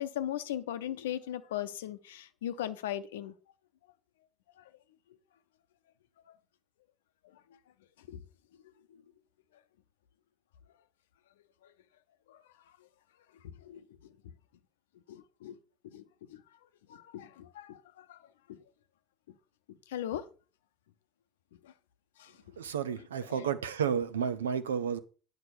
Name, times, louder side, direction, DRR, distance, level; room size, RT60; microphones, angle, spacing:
voice 1, 0.0-3.3 4.6-4.7 6.3-6.4 8.0-8.2 8.9-9.0 11.6-11.7 12.3-12.4 13.4-14.1 15.1-15.6 15.8-16.4 16.9-18.2 18.5-18.6 19.7-20.2 21.6-21.7 22.2-22.4 23.3-23.5, left 11 dB, 80° left, 0.7 m, -39 dB
voice 2, 22.6-25.0, right 7 dB, 85° right, 0.7 m, -31 dB
9.6 x 5.2 x 6.1 m
hypercardioid pair, 65°, 0 cm